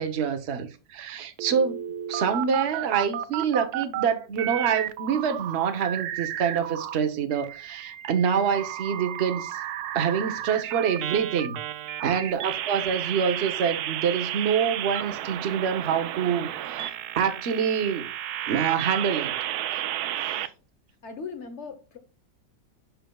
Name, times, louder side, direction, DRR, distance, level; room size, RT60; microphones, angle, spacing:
voice 1, 0.0-1.8 2.1-9.6 9.9-11.6 12.0-18.1 18.5-19.3 20.2-20.5, right 7 dB, 45° right, 0.9 m, -26 dB
sound 1, 1.4-4.0 4.4-6.9 7.3-20.5, right 12 dB, 70° right, 0.9 m, -32 dB
voice 2, 21.0-22.0, left 5 dB, 50° left, 1.0 m, -39 dB
10.5 x 4.5 x 2.3 m
omnidirectional pair, 2.1 m